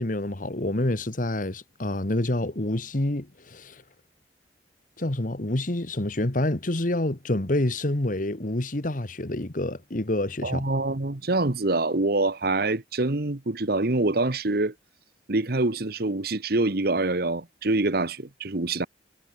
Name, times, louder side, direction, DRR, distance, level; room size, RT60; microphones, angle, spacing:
voice 1, 0.0-3.8 5.0-10.7, left 1 dB, 45° left, 1.6 m, -27 dB
voice 2, 10.4-14.7 15.3-18.9, right 2 dB, 60° right, 1.3 m, -25 dB
head